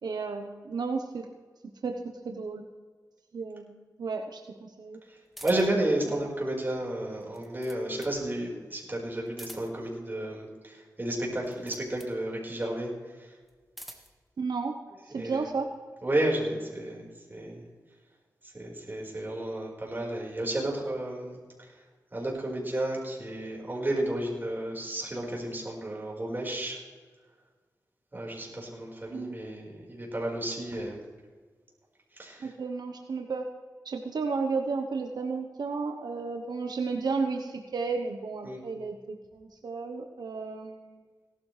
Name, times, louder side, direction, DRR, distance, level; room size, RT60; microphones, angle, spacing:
voice 1, 0.0-1.3 1.8-2.7 3.3-5.0 6.1-6.3 14.4-14.8 15.1-15.7 29.1-29.4 32.4-33.5 33.8-41.0, right 4 dB, 85° right, 4 dB, 1.0 m, -33 dB
sound 1, 5.3-5.9 7.2-8.2 9.3-9.9 11.4-12.2 13.4-14.2, equal, ahead, 1.7 m, -48 dB
voice 2, 5.4-12.9 13.2-13.3 15.1-15.5 16.0-17.6 18.5-21.4 22.1-26.8 28.1-31.0 32.2-32.5 38.4-38.6, right 1 dB, 30° right, -2 dB, 4.6 m, -32 dB
18.0 x 12.0 x 3.3 m, 1.4 s
wide cardioid pair, 80°, 7 cm